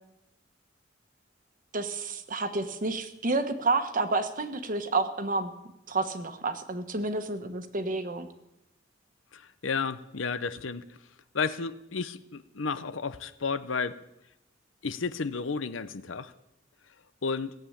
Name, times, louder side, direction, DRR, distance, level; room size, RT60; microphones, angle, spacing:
voice 1, 1.7-5.5 5.9-8.3, right 3 dB, 45° right, 8 dB, 1.2 m, -30 dB
voice 2, 9.3-10.8 11.3-14.0 14.8-16.3 17.2-17.5, left 5 dB, 80° left, 13 dB, 0.8 m, -32 dB
17.0 x 8.0 x 8.6 m, 0.89 s
head